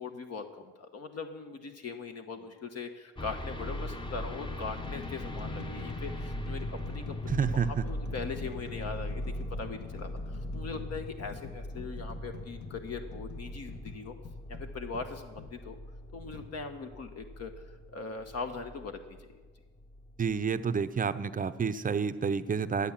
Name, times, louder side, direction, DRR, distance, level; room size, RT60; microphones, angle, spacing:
voice 1, 0.0-14.1 14.5-15.8 16.1-19.4, left 4 dB, 55° left, 6 dB, 1.1 m, -41 dB
sound 1, 2.3-2.6 3.5-3.6 4.3-15.6 16.3-16.5, left 5 dB, 75° left, 1.4 m, -46 dB
sound 2, 3.2-19.3 19.8-20.6, left 1 dB, 15° left, 0.9 m, -40 dB
voice 2, 7.3-7.8 20.2-22.9, right 6 dB, 30° right, 12 dB, 0.6 m, -29 dB
12.0 x 8.1 x 7.3 m, 1.4 s
cardioid pair, 90°, 30 cm